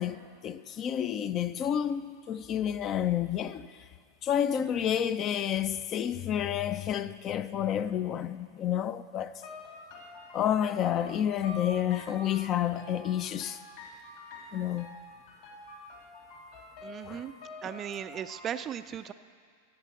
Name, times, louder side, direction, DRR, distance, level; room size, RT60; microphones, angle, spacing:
voice 1, 0.0-3.7 4.2-9.3 10.3-13.6 14.5-14.9 17.1-17.3 17.6-17.7, left 10 dB, 30° left, 0.4 m, -30 dB
sound 1, 9.3-18.5, left 2 dB, 50° left, 3.1 m, -47 dB
voice 2, 16.8-17.3 17.6-19.1, right 9 dB, 30° right, 0.4 m, -37 dB
14.0 x 8.1 x 6.7 m
figure-of-eight pair, 90°, 0 cm